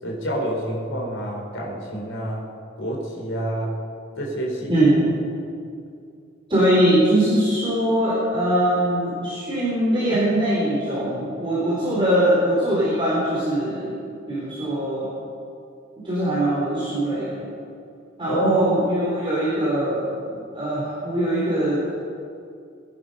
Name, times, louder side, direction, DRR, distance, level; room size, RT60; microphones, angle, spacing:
voice 1, 0.0-2.5 2.8-3.8 4.2-4.7 18.3-18.6, right 1 dB, 70° left, -2 dB, 3.9 m, -27 dB
voice 2, 4.7-5.0 6.5-15.1 16.0-17.4 18.2-21.8, right 1 dB, 25° right, -8 dB, 3.7 m, -22 dB
22.0 x 11.0 x 5.5 m, 2.4 s
head